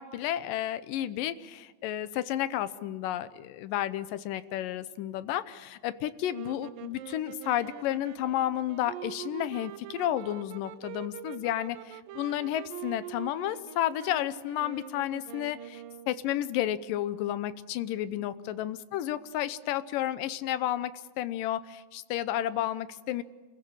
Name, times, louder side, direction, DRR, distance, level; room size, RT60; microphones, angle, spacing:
voice 1, 0.0-23.2, left 12 dB, 75° left, 14 dB, 2.3 m, -32 dB
sound 1, 6.3-16.3, right 11 dB, 75° right, 2.5 m, -44 dB
28.5 x 15.5 x 8.8 m, 1.3 s
omnidirectional pair, 4.2 m